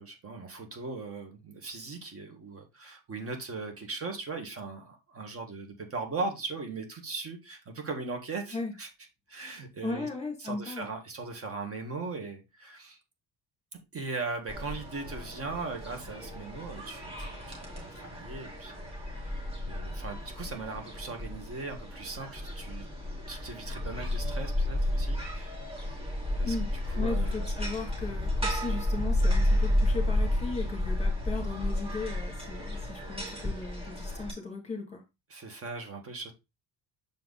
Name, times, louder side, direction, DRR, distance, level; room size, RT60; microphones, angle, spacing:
voice 1, 0.0-8.9 9.3-10.1 10.4-13.0 13.9-22.9 23.3-25.6 26.4-26.6 26.8-27.5 35.3-36.3, right 3 dB, 30° right, 1.7 m, -39 dB
voice 2, 9.8-10.9 26.4-35.0, left 3 dB, 15° left, 2.3 m, -37 dB
sound 1, 14.5-34.3, left 1 dB, 15° right, 2.3 m, -32 dB
7.1 x 4.6 x 3.9 m
cardioid pair, 165°, 45 cm